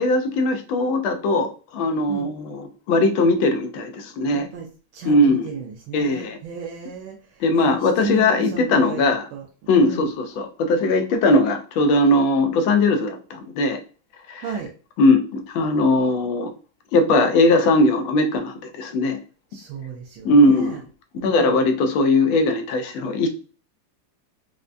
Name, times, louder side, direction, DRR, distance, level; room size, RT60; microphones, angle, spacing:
voice 1, 0.0-4.5 5.0-5.5 5.9-6.4 7.4-9.2 9.7-13.8 14.3-14.4 15.0-16.5 16.9-19.2 20.2-20.7 21.2-23.3, left 2 dB, 80° left, 6 dB, 1.4 m, -19 dB
voice 2, 4.3-9.5 9.8-10.1 14.4-14.7 19.5-20.8 21.1-21.6, right 5 dB, 90° right, -1 dB, 1.4 m, -34 dB
4.6 x 2.1 x 2.5 m, 0.38 s
omnidirectional pair, 2.1 m